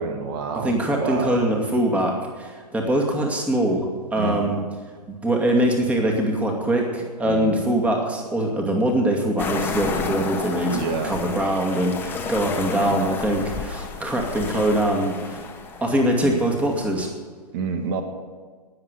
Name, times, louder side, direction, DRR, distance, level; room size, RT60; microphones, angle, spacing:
voice 1, 0.0-1.4 4.1-4.6 7.2-7.6 10.7-11.2 16.2-16.5 17.5-18.0, right 5 dB, 35° right, 7 dB, 1.7 m, -28 dB
voice 2, 0.6-4.6 5.1-15.4 15.8-17.1, right 1 dB, 5° right, 1 dB, 2.3 m, -23 dB
sound 1, 9.4-17.1, left 4 dB, 10° left, 1.5 m, -32 dB
19.0 x 7.7 x 7.7 m, 1.5 s
figure-of-eight pair, 120°, 21 cm